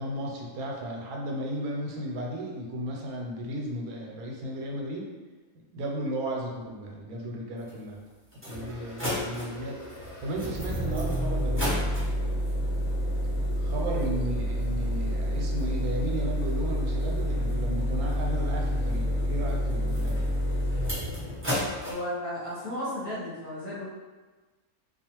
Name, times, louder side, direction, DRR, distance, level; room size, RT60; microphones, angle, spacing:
voice 1, 0.0-5.1 5.7-8.0 8.5-11.9 13.6-20.3, equal, 90° right, -1 dB, 1.1 m, -34 dB
encender carro, 7.7-7.8 8.3-21.9, equal, 10° right, 0.8 m, -29 dB
voice 2, 21.8-23.9, left 1 dB, 45° left, -9 dB, 0.8 m, -34 dB
2.3 x 2.3 x 2.9 m, 1.3 s
omnidirectional pair, 1.5 m